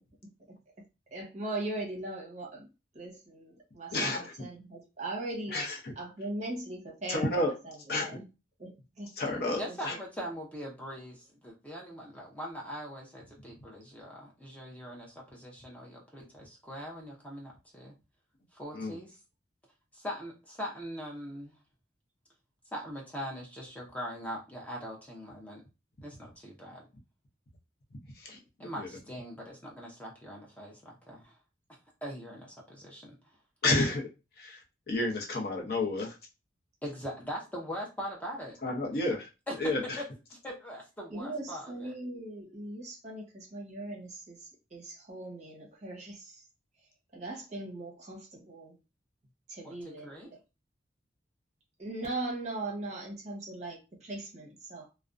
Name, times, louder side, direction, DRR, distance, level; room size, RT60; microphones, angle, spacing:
voice 1, 1.1-2.7 2.9-5.6 6.0-7.3 7.6-7.8 8.0-8.3 8.6-10.0 28.3-28.4 41.1-46.4 47.1-48.8 49.5-50.4 51.8-54.9, right 2 dB, 35° right, -1 dB, 0.8 m, -40 dB
voice 2, 3.9-4.3 5.5-5.9 7.1-7.5 7.9-8.2 9.2-10.0 18.7-19.0 28.1-28.4 28.7-28.9 33.6-34.1 34.4-36.2 38.6-39.3 39.6-40.0, left 2 dB, 55° left, 0 dB, 0.7 m, -31 dB
voice 3, 9.6-17.9 18.5-19.2 19.9-21.5 22.7-25.6 26.0-26.8 28.6-31.4 32.0-33.1 36.8-38.6 39.5-39.6 40.4-41.9 49.6-50.3, equal, 10° left, -3 dB, 0.5 m, -41 dB
2.4 x 2.1 x 2.4 m, 0.28 s
head